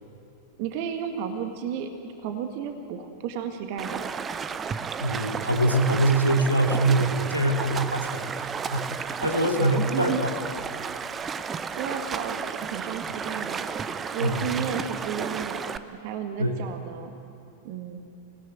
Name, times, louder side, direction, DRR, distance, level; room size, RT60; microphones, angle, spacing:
voice 1, 0.6-1.9 2.2-4.1 9.6-10.2 11.8-13.6 14.1-15.6 16.0-17.1 17.6-18.0, right 8 dB, 45° right, 6 dB, 1.8 m, -32 dB
Stream, 3.8-15.8, right 6 dB, 20° right, 0.8 m, -33 dB
voice 2, 5.0-8.9 9.2-10.3 14.2-14.7 16.4-16.6, right 1 dB, 90° right, 3 dB, 2.2 m, -24 dB
26.5 x 18.0 x 9.3 m, 2.7 s
figure-of-eight pair, 90°, 0 cm